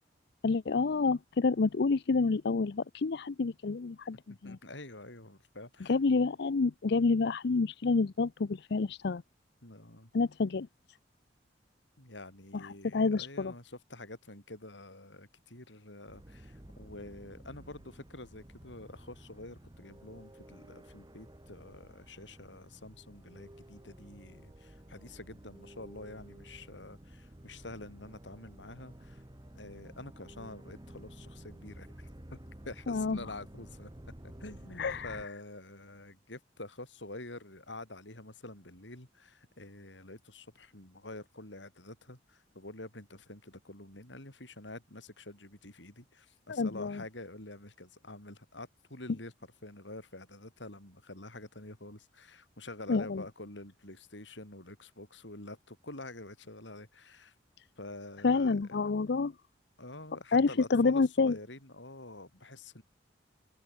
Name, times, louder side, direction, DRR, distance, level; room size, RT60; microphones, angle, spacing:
voice 1, 0.4-4.2 4.4-4.6 5.9-9.2 10.1-10.7 12.9-13.5 32.9-33.2 34.8-35.1 46.5-46.9 52.9-53.2 58.2-59.3 60.3-61.3, left 4 dB, 65° left, 0.6 m, -28 dB
voice 2, 4.4-6.0 9.6-10.1 12.0-29.2 29.5-33.9 34.2-57.4 57.8-58.9 59.8-62.8, left 2 dB, 90° left, 6.9 m, -47 dB
sound 1, 16.1-35.3, right 1 dB, 25° right, 1.5 m, -52 dB
open air
head